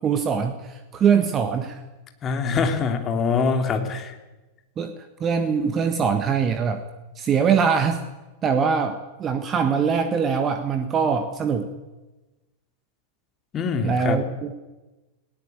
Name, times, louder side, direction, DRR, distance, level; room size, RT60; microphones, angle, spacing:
voice 1, 0.0-1.8 4.8-4.9 5.2-6.8 7.2-8.0 8.4-11.7 13.8-14.5, right 6 dB, 25° right, 8 dB, 1.5 m, -22 dB
voice 2, 2.2-4.1 13.5-14.2, left 5 dB, 25° left, 5 dB, 3.1 m, -24 dB
19.5 x 17.5 x 8.7 m, 1.1 s
figure-of-eight pair, 90°, 0 cm